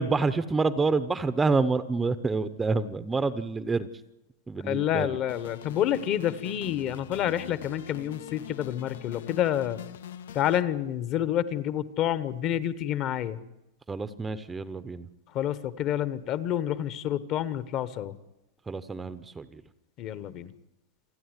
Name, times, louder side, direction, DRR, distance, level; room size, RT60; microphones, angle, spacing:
voice 1, 0.0-3.9 4.5-5.2 13.9-15.1 18.7-19.6, right 4 dB, 10° right, 13 dB, 0.7 m, -28 dB
voice 2, 4.6-9.8 10.3-13.4 15.3-18.2 20.0-20.5, left 11 dB, 35° left, 16 dB, 1.0 m, -28 dB
sound 1, 5.3-10.6, left 10 dB, 85° left, 1.0 m, -43 dB
28.0 x 10.0 x 9.7 m, 0.96 s
supercardioid pair, 160°, 0 cm